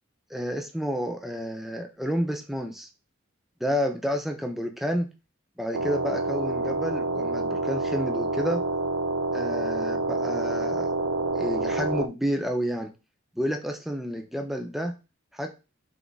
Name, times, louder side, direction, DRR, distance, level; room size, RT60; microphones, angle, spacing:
voice 1, 0.3-2.9 3.6-5.1 5.6-8.6 9.3-10.9 11.3-12.9 13.4-14.9 15.3-15.5, equal, ahead, 4 dB, 0.6 m, -30 dB
sound 1, 5.7-12.1, right 2 dB, 80° right, 0.4 m, -28 dB
3.5 x 3.5 x 3.9 m, 0.30 s
head